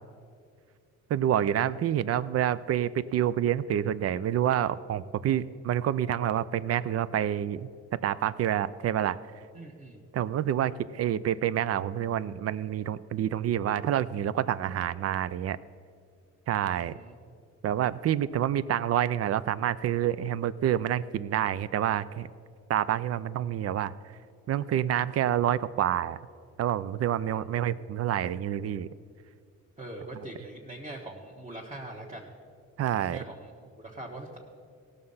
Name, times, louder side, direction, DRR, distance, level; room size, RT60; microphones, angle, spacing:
voice 1, 1.1-7.7 8.0-9.2 10.1-15.6 16.5-17.0 17.6-22.3 22.7-23.9 24.5-26.2 26.6-28.9 32.8-33.2, right 10 dB, 55° right, 17 dB, 0.5 m, -28 dB
voice 2, 9.5-10.0 16.7-17.1 27.6-28.0 29.8-32.3 33.0-34.4, right 1 dB, 20° right, -3 dB, 1.3 m, -43 dB
17.0 x 6.6 x 5.6 m, 2.2 s
cardioid pair, 90°, 30 cm